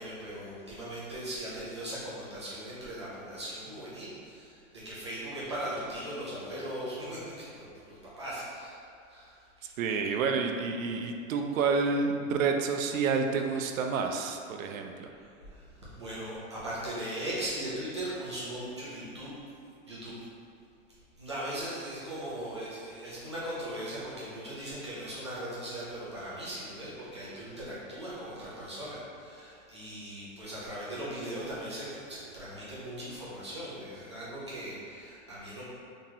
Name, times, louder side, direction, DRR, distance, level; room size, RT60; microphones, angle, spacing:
voice 1, 0.0-8.8 9.1-9.5 15.1-19.3 19.9-20.2 21.2-35.6, right 1 dB, 25° right, -9 dB, 0.3 m, -39 dB
voice 2, 9.6-15.1, right 5 dB, 80° right, 4 dB, 0.5 m, -29 dB
3.7 x 3.0 x 2.7 m, 2.4 s
supercardioid pair, 175°, 40 cm